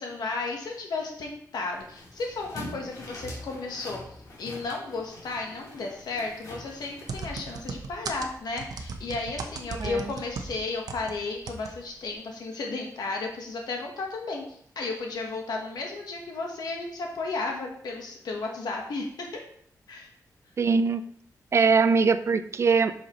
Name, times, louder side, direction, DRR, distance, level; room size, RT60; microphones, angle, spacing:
voice 1, 0.0-19.4 19.9-20.1, left 3 dB, 85° left, 1 dB, 1.1 m, -34 dB
sound 1, 1.7-7.8, left 1 dB, 55° left, 2.0 m, -44 dB
sound 2, 7.1-11.1 11.5-11.7 12.0-12.1, right 4 dB, 75° right, 0.8 m, -36 dB
voice 2, 9.8-10.1 20.6-21.1 21.5-22.9, right 5 dB, 45° right, 12 dB, 0.4 m, -22 dB
8.0 x 5.6 x 3.0 m, 0.64 s
wide cardioid pair, 155°, 7 cm